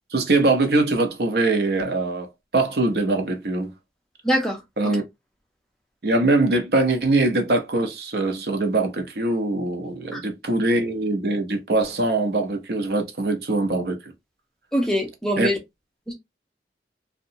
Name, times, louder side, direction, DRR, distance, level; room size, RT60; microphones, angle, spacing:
voice 1, 0.1-2.3 2.5-3.7 4.8-5.0 6.0-14.0 15.4-15.5, right 2 dB, 65° right, 0.7 m, -22 dB
voice 2, 4.2-4.9 10.1-10.2 14.7-15.5 16.1-16.2, equal, 5° left, 0.5 m, -24 dB
2.8 x 2.2 x 2.6 m
head